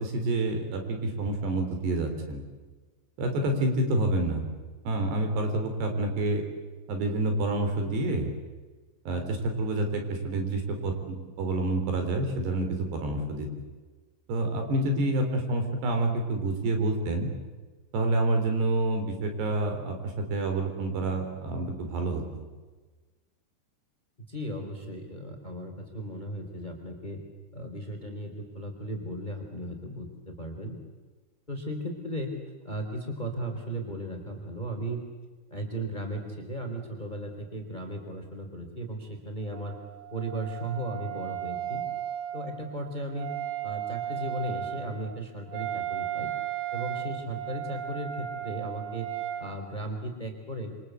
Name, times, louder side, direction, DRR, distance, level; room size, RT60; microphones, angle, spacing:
voice 1, 0.0-2.4 3.2-4.4 4.9-6.4 6.9-8.3 9.1-13.5 14.3-17.3 17.9-22.5, right 2 dB, 70° right, 5 dB, 5.9 m, -28 dB
voice 2, 24.3-27.2 27.5-30.8 31.5-32.4 32.6-35.0 35.5-39.7 40.1-41.8 42.3-43.4 43.6-46.3 46.7-49.1 49.4-50.7, right 1 dB, 10° left, 5 dB, 3.3 m, -36 dB
Wind instrument woodwind instrument, 39.5-49.5, right 12 dB, 90° right, 6.3 m, -35 dB
27.5 x 26.0 x 8.2 m, 1.3 s
omnidirectional pair, 5.1 m